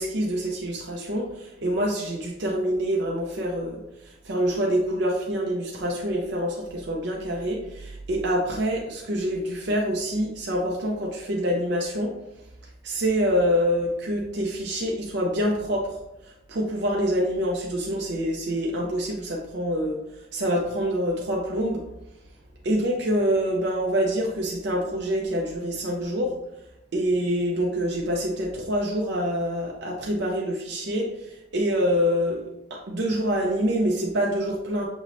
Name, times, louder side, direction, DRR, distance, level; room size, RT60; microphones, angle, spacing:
voice 1, 0.0-12.1 12.8-16.0 16.2-20.0 20.3-21.8 22.6-26.3 26.9-32.4 32.7-34.9, equal, 60° right, -2 dB, 0.5 m, -26 dB
6.3 x 3.1 x 2.6 m, 0.90 s
head